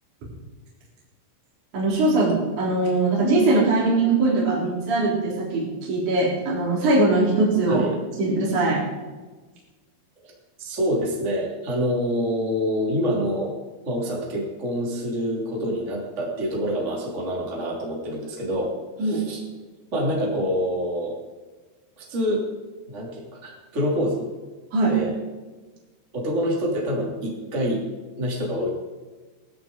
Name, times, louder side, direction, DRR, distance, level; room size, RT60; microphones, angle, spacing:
voice 1, 1.7-7.8 8.2-8.8 19.0-19.2 24.7-24.9, right 2 dB, 50° right, -5 dB, 5.0 m, -21 dB
voice 2, 10.6-13.5 13.9-19.4 19.9-21.2 22.0-22.5 22.9-24.3 24.9-25.1 26.1-27.9 28.2-28.7, equal, 20° right, -3 dB, 2.7 m, -26 dB
18.5 x 13.5 x 3.9 m, 1.3 s
omnidirectional pair, 4.6 m